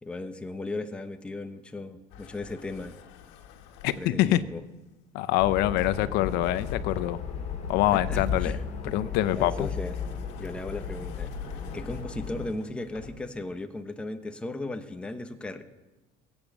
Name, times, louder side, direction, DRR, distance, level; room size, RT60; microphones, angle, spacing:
voice 1, 0.0-3.0 4.0-4.6 7.9-8.9 9.4-10.0 10.4-11.3 11.7-15.6, left 2 dB, 5° left, 7 dB, 0.7 m, -36 dB
sound 1, 2.1-4.7 5.8-7.3 7.8-13.4, left 8 dB, 80° left, 1.7 m, -49 dB
voice 2, 3.8-4.4 5.1-7.2 7.7-8.6 8.9-9.7, left 14 dB, 65° left, 15 dB, 0.6 m, -25 dB
sound 2, 5.4-12.5, left 6 dB, 40° left, 2.1 m, -35 dB
20.5 x 8.9 x 7.2 m, 1.1 s
cardioid pair, 180°, 18 cm